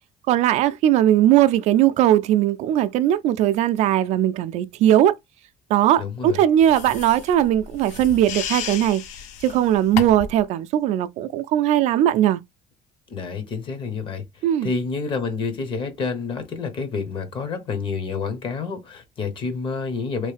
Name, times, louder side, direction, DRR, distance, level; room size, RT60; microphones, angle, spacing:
voice 1, 0.3-5.2 5.7-9.0 9.4-12.4 14.4-14.7, right 12 dB, 65° right, 0.4 m, -19 dB
voice 2, 6.0-6.4 13.1-14.2 14.6-20.3, left 5 dB, 40° left, 0.9 m, -28 dB
sound 1, 6.6-10.4, left 8 dB, 70° left, 0.5 m, -33 dB
3.1 x 2.7 x 3.2 m
cardioid pair, 145°, 13 cm